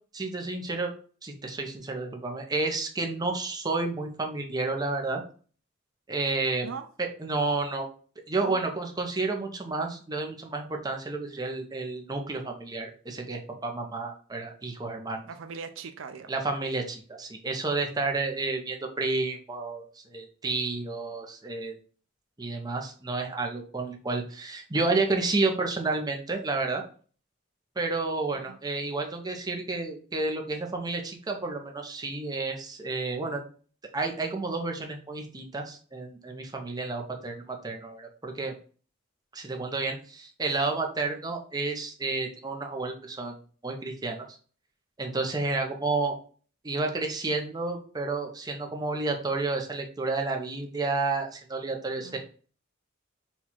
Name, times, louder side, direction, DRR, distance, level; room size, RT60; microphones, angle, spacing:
voice 1, 0.1-0.9 1.2-5.2 6.1-6.7 7.0-7.9 8.3-15.3 16.3-21.7 22.4-26.8 27.8-33.4 33.9-38.5 39.3-43.4 43.6-44.3 45.0-46.2 46.6-52.2, right 3 dB, 20° right, 0.7 m, -31 dB
voice 2, 15.3-16.3 28.5-28.6 52.0-52.2, right 5 dB, 70° right, 0.4 m, -40 dB
4.4 x 2.4 x 4.2 m
head